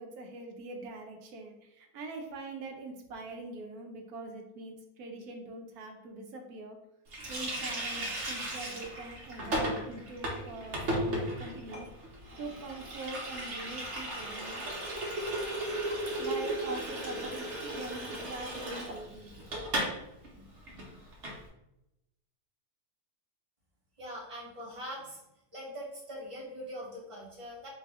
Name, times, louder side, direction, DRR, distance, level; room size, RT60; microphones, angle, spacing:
voice 1, 0.0-6.8 7.3-11.9 12.4-14.6 16.2-19.5 20.3-20.9, right 2 dB, 70° right, 3 dB, 1.2 m, -43 dB
Water tap faucet, 7.1-20.0 20.2-20.4 20.7-21.4, right 1 dB, 50° right, 1.1 m, -35 dB
voice 2, 24.0-25.2 25.5-27.7, equal, 25° right, -5 dB, 1.0 m, -42 dB
4.1 x 2.7 x 3.6 m, 0.88 s
omnidirectional pair, 1.7 m